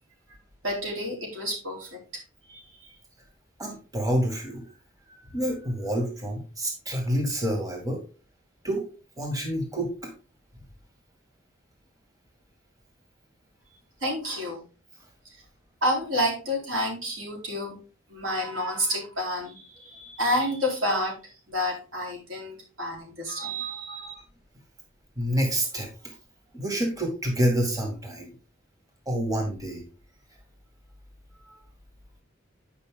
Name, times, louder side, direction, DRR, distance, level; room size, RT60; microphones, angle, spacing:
voice 1, 0.6-2.2 2.5-2.9 14.0-14.6 15.8-17.8 18.1-24.2, equal, 90° right, -1 dB, 4.1 m, -29 dB
voice 2, 3.6-4.6 5.3-8.0 8.6-8.8 9.2-10.1 25.2-26.1 26.5-28.3 29.1-29.8 31.4-31.6, right 1 dB, 20° right, 1 dB, 2.3 m, -28 dB
9.6 x 5.7 x 3.8 m, 0.34 s
head